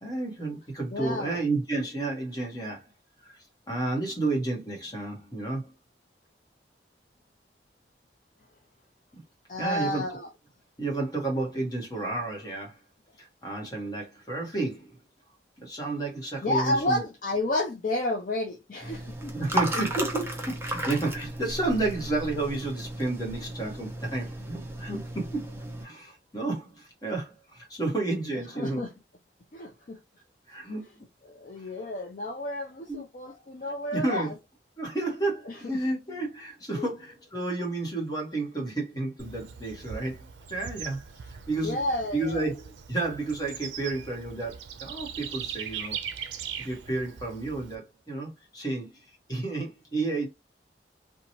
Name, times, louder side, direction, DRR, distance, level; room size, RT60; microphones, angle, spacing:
voice 1, 0.0-2.9 3.2-5.7 9.1-9.2 9.6-10.0 10.8-12.8 13.2-14.9 15.6-17.0 19.3-25.5 25.8-28.8 30.5-31.0 31.6-31.7 32.9-33.0 33.9-34.3 34.8-41.0 41.3-41.8 42.1-46.0 46.6-48.9 49.3-50.3, right 2 dB, 20° left, 1.0 m, -31 dB
voice 2, 0.9-1.4 9.5-10.3 16.4-19.6 28.6-28.9 29.5-30.0 31.2-34.3 35.5-35.6 36.8-36.9 41.6-42.5, left 1 dB, 45° left, 0.5 m, -31 dB
sound 1, 18.8-25.9, right 1 dB, 15° right, 0.5 m, -34 dB
Bird / Insect, 39.2-47.8, right 7 dB, 85° right, 0.4 m, -40 dB
2.8 x 2.2 x 2.8 m
head